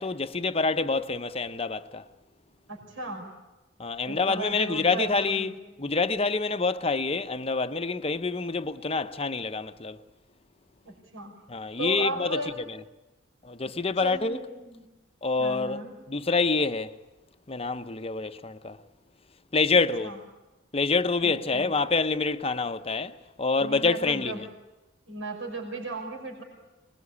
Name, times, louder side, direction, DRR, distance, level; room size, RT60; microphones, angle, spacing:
voice 1, 0.0-2.1 3.8-10.0 11.5-12.4 13.4-14.4 15.2-15.8 16.1-17.0 17.5-18.8 19.5-20.1 20.7-24.5, left 4 dB, 30° left, 0.8 m, -27 dB
voice 2, 2.7-3.3 4.1-5.6 10.9-11.4 11.8-12.5 14.0-14.9 15.4-15.9 20.0-20.2 21.2-21.7 23.6-24.4 25.1-26.4, right 2 dB, 75° right, 5.4 m, -36 dB
25.5 x 21.0 x 8.5 m
head